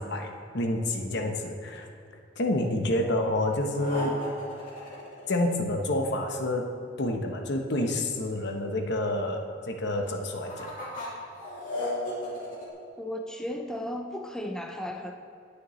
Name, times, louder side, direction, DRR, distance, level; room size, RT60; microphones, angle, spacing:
voice 1, 0.0-1.9 2.4-4.2 5.3-6.7 7.0-10.7, left 1 dB, 60° left, 3 dB, 1.0 m, -28 dB
sound 1, 3.7-5.9 10.0-12.6, left 1 dB, 45° left, 2.7 m, -35 dB
voice 2, 13.0-15.1, left 1 dB, 5° left, 3 dB, 0.4 m, -35 dB
18.5 x 6.7 x 3.2 m, 2.6 s
head